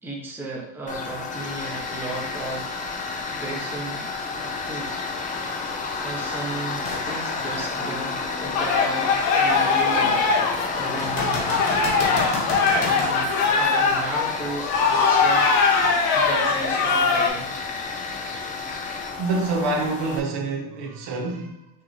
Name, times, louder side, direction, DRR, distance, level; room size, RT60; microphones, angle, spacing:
voice 1, 0.0-3.0 3.4-5.0 5.5-5.6 6.0-11.7 12.0-12.3 12.6-15.5 15.8-17.5, right 2 dB, 5° right, 0.8 m, -35 dB
Tools, 0.9-20.2, left 4 dB, 20° left, 0.5 m, -30 dB
sound 1, 6.8-7.1 7.7-7.8 11.0-13.2 16.9-17.0, left 2 dB, 40° left, 1.3 m, -31 dB
voice 2, 7.0-7.4 11.3-12.3 12.6-12.8 15.1-16.3 18.7-21.7, right 3 dB, 65° right, 1.1 m, -30 dB
sound 2, 8.5-17.3, left 4 dB, 70° left, 1.0 m, -21 dB
6.1 x 2.7 x 3.1 m
cardioid pair, 135°, 43 cm